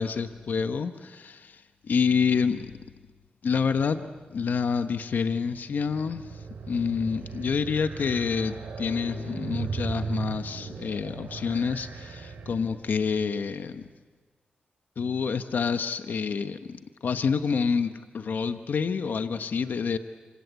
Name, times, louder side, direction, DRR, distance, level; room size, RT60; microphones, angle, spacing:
voice 1, 0.0-2.8 3.4-13.9 15.0-20.0, left 6 dB, 75° left, 9 dB, 1.1 m, -28 dB
sound 1, 5.6-13.0, right 5 dB, 80° right, 4.6 m, -37 dB
28.0 x 26.0 x 8.2 m, 1.3 s
cardioid pair, 55°, 3 cm